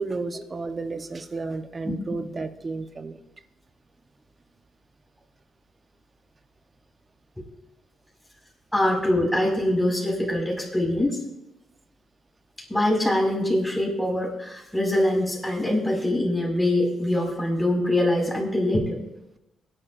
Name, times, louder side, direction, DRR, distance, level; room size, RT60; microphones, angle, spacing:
voice 1, 0.0-3.2, right 3 dB, 35° right, 9 dB, 1.1 m, -32 dB
voice 2, 8.7-11.2 12.7-19.0, left 1 dB, 5° left, -1 dB, 5.8 m, -23 dB
24.0 x 11.5 x 2.7 m, 0.91 s
cardioid pair, 75°, 0 cm